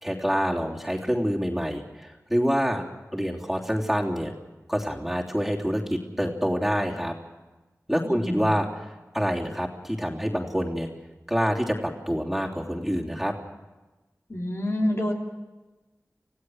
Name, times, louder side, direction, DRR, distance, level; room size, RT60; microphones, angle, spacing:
voice 1, 0.0-2.8 3.1-4.3 4.7-7.1 7.9-8.9 9.1-10.9 11.3-13.3, equal, 5° right, -2 dB, 3.2 m, -26 dB
voice 2, 8.0-8.5 14.3-15.1, left 1 dB, 50° left, 0 dB, 3.2 m, -27 dB
27.5 x 16.5 x 6.4 m, 1.2 s
wide cardioid pair, 70°, 6 cm